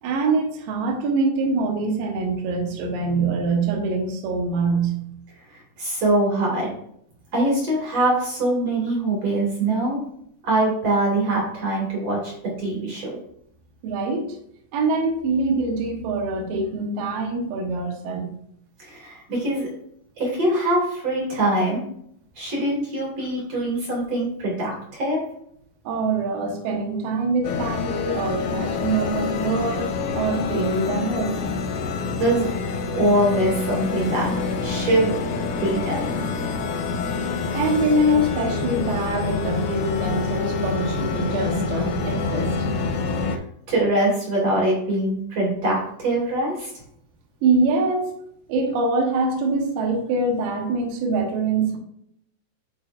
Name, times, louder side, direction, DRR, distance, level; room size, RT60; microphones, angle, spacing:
voice 1, 0.0-5.0 13.8-14.4 14.7-18.3 25.8-31.3 37.5-42.8 47.4-48.1 48.5-51.8, right 3 dB, 80° right, 2 dB, 2.0 m, -24 dB
voice 2, 5.5-6.7 7.3-10.0 10.4-13.2 18.8-19.7 20.2-21.8 22.4-25.2 31.7-32.5 32.9-34.3 34.6-35.1 35.6-36.2 43.3-43.4 43.7-46.7, right 1 dB, 50° right, -3 dB, 2.0 m, -23 dB
sound 1, 27.4-43.4, left 4 dB, 90° left, 3.6 m, -27 dB
12.0 x 4.6 x 2.5 m, 0.71 s
omnidirectional pair, 6.0 m